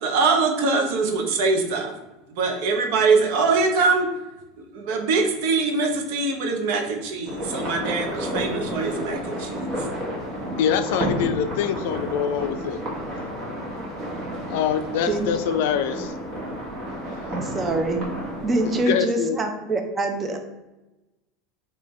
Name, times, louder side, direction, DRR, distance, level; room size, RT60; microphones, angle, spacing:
voice 1, 0.0-1.9 2.3-4.1 4.7-9.9, right 4 dB, 70° right, 4 dB, 0.7 m, -23 dB
sound 1, 7.2-18.8, equal, 45° right, 1.4 m, -31 dB
voice 2, 10.6-12.8 14.4-16.1 18.6-19.4, left 8 dB, 75° left, 9 dB, 0.3 m, -24 dB
voice 3, 17.4-18.0 18.4-20.4, right 2 dB, 25° right, 5 dB, 0.6 m, -24 dB
3.5 x 2.7 x 3.1 m, 1.0 s
supercardioid pair, 110°, 0 cm